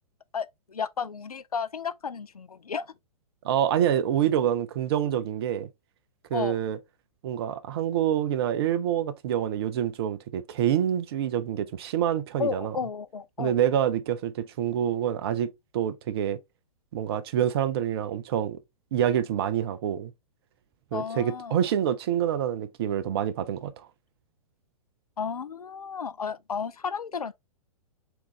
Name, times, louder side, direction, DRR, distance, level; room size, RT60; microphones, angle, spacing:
voice 1, 0.3-2.9 6.3-6.6 12.4-13.6 20.9-21.6 25.2-27.3, left 6 dB, 80° left, 0.4 m, -33 dB
voice 2, 3.4-5.7 6.3-6.8 7.2-12.8 13.4-16.4 16.9-18.6 18.9-20.1 20.9-23.7, right 10 dB, 45° right, 0.5 m, -26 dB
4.5 x 3.7 x 3.0 m
figure-of-eight pair, 110°, 19 cm